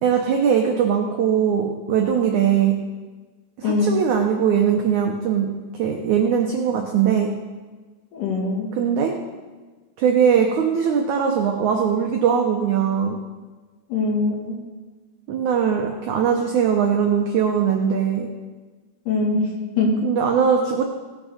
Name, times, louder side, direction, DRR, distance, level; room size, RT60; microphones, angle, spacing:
voice 1, 0.0-2.7 3.6-5.5 5.8-7.3 8.8-9.1 10.0-13.2 15.3-18.3 20.0-20.8, right 7 dB, 85° right, 2 dB, 1.7 m, -20 dB
voice 2, 3.6-4.0 8.1-8.7 13.9-14.6 19.1-19.9, left 3 dB, 75° left, -2 dB, 4.3 m, -22 dB
18.0 x 6.3 x 5.0 m, 1.3 s
omnidirectional pair, 4.7 m